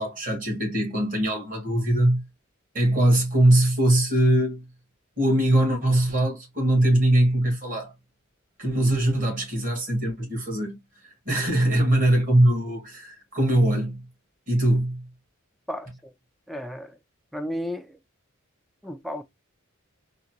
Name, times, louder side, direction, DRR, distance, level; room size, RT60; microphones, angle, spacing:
voice 1, 0.0-2.2 2.7-4.6 5.2-7.9 8.6-10.8 11.0-14.0 14.5-15.1, right 1 dB, 40° right, 1.7 m, -22 dB
voice 2, 15.7-16.1 16.5-17.0 17.3-18.0 18.8-19.2, equal, ahead, 0.3 m, -33 dB
3.8 x 2.2 x 2.8 m
head